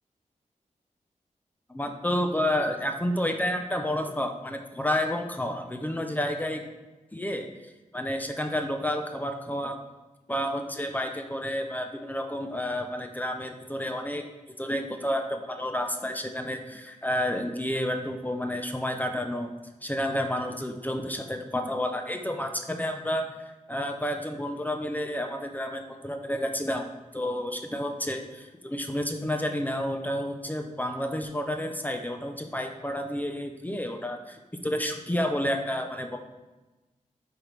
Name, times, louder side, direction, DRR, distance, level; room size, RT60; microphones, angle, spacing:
voice 1, 1.7-6.6 7.1-7.5 7.9-9.8 10.3-14.2 14.6-19.5 19.8-23.3 23.7-26.9 27.1-34.4 34.6-36.2, left 1 dB, 10° left, 5 dB, 0.6 m, -30 dB
8.8 x 4.7 x 3.4 m, 1.1 s
wide cardioid pair, 95°, 14 cm